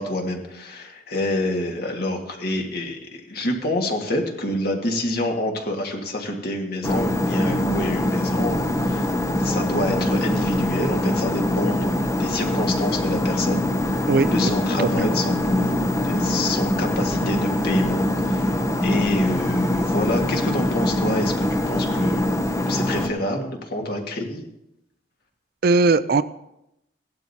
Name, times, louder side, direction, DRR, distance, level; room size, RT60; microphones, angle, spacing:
voice 1, 0.0-14.0 14.3-22.3 22.7-24.4, left 1 dB, 55° left, 2 dB, 1.8 m, -27 dB
sound 1, 6.8-23.1, left 1 dB, 15° left, 0.6 m, -23 dB
voice 2, 25.6-26.2, right 3 dB, 50° right, 14 dB, 0.4 m, -18 dB
17.0 x 11.5 x 2.8 m, 0.86 s
head